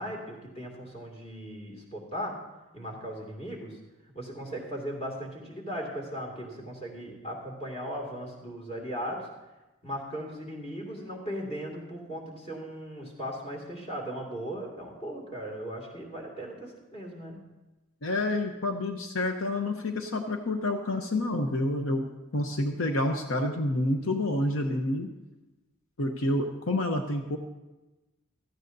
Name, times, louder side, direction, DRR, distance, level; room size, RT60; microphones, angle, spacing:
voice 1, 0.0-2.3 2.7-3.8 4.1-9.3 9.8-17.4, equal, 30° left, -1 dB, 2.3 m, -37 dB
voice 2, 18.0-22.0 22.3-25.1 26.0-27.4, left 1 dB, 75° left, 4 dB, 0.8 m, -28 dB
16.5 x 13.5 x 2.7 m, 1.1 s
head